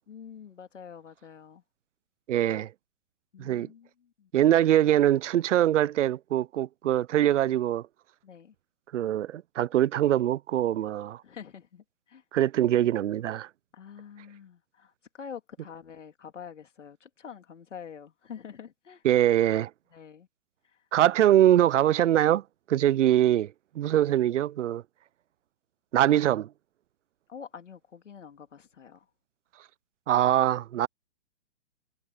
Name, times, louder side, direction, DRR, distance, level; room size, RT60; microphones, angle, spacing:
voice 1, 0.1-1.6 3.3-4.3 8.2-8.5 11.2-12.2 13.7-19.0 19.9-20.3 20.6-20.8 27.3-29.1, left 7 dB, 80° left, 3.1 m, -46 dB
voice 2, 2.3-2.7 3.4-3.7 4.3-7.8 8.9-11.2 12.3-13.5 19.0-19.7 20.9-22.4 22.7-24.8 25.9-26.5 30.1-30.9, right 12 dB, 75° right, 0.5 m, -23 dB
hypercardioid pair, 170°, 36 cm